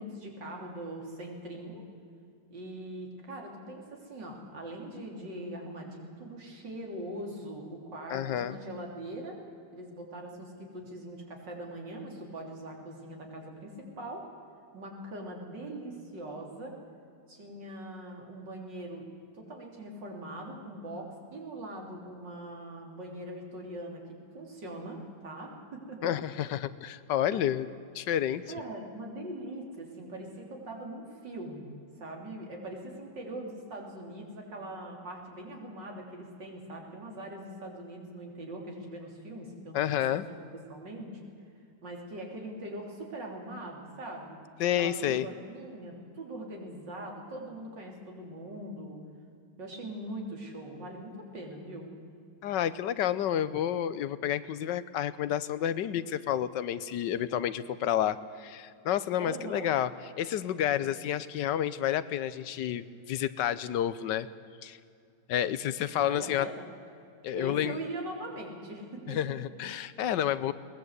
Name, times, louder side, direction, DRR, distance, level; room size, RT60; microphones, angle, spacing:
voice 1, 0.0-1.8 2.5-9.4 9.7-14.3 14.7-16.7 17.3-19.1 19.3-24.0 24.3-26.1 27.3-27.4 28.4-31.7 32.0-40.4 40.7-41.2 41.8-44.4 44.8-49.0 49.6-51.9 59.2-59.7 66.0-66.7 67.3-69.3, right 1 dB, 75° right, 0 dB, 3.9 m, -41 dB
voice 2, 8.1-8.6 26.0-27.7 27.9-28.4 39.7-40.2 44.6-45.3 52.4-59.9 60.2-64.3 64.6-64.8 65.3-66.5 67.2-67.8 69.1-70.5, left 11 dB, 80° left, 15 dB, 1.4 m, -30 dB
21.5 x 19.5 x 8.1 m, 2.4 s
omnidirectional pair, 1.9 m